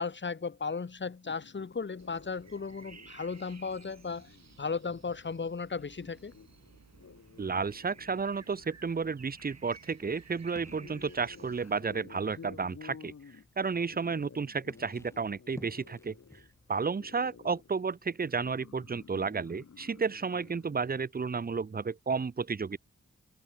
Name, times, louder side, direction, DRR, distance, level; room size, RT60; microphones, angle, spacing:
voice 1, 0.0-4.3 4.6-6.3, left 5 dB, 40° left, 1.1 m, -35 dB
sound 1, 1.2-20.8, left 6 dB, 60° left, 1.7 m, -55 dB
sound 2, 2.0-12.0, right 5 dB, 65° right, 6.0 m, -56 dB
voice 2, 7.4-13.1 13.6-16.1 16.7-22.8, right 5 dB, 30° right, 0.6 m, -32 dB
sound 3, 7.6-18.1, left 1 dB, 10° left, 6.5 m, -57 dB
wide cardioid pair, 80°, 29 cm